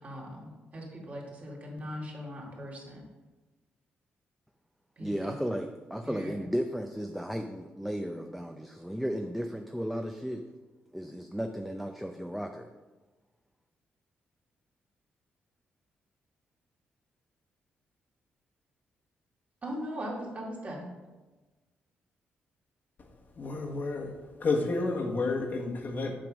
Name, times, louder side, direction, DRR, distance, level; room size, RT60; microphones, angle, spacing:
voice 1, 0.0-3.0 5.0-5.4 6.0-6.3 19.6-20.9, equal, 40° right, -3 dB, 2.3 m, -40 dB
voice 2, 5.0-10.4 10.9-12.7, equal, ahead, 4 dB, 0.5 m, -34 dB
voice 3, 23.3-24.1 24.4-26.1, left 3 dB, 50° left, 1 dB, 1.2 m, -30 dB
7.6 x 3.7 x 6.2 m, 1.2 s
cardioid pair, 85°, 4 cm